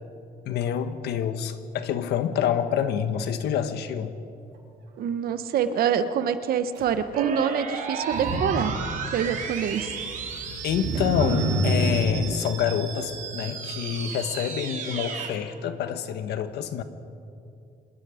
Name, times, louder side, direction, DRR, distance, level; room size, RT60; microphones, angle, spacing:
voice 1, 0.4-4.2 10.6-16.8, left 8 dB, 75° left, 10 dB, 1.4 m, -27 dB
voice 2, 5.0-8.7 9.1-9.9, right 8 dB, 65° right, 10 dB, 1.2 m, -26 dB
Motor vehicle (road), 6.8-6.9 8.0-12.4, right 1 dB, 90° right, 4.5 m, -28 dB
sound 1, 7.1-15.3, right 6 dB, 50° right, 2.9 m, -34 dB
26.0 x 20.5 x 5.1 m, 2.6 s
cardioid pair, 145°, 17 cm